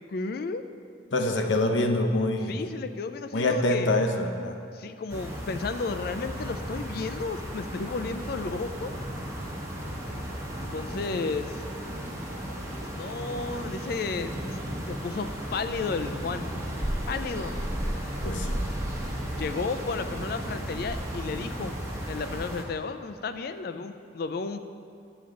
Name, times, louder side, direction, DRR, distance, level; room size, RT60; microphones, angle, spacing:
voice 1, 0.1-0.6 2.5-4.0 4.7-8.9 10.6-11.6 12.9-14.3 14.9-16.5 17.1-17.6 19.4-21.8 22.1-24.6, left 4 dB, 50° left, 10 dB, 0.4 m, -33 dB
voice 2, 1.1-2.6 3.3-4.6 10.9-11.2 18.2-18.6, left 2 dB, 75° left, 5 dB, 0.7 m, -26 dB
sound 1, 5.1-22.6, equal, 15° right, 1.0 m, -34 dB
11.5 x 7.0 x 3.8 m, 2.4 s
head